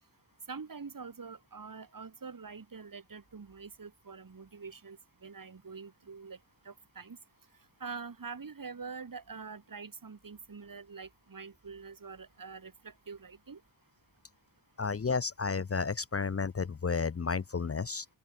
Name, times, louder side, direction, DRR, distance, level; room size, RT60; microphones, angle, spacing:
voice 1, 0.5-6.4 6.6-7.2 7.8-13.6, right 5 dB, 50° right, 3.2 m, -45 dB
voice 2, 14.8-18.1, left 5 dB, 35° left, 0.7 m, -32 dB
open air
wide cardioid pair, 80°, 41 cm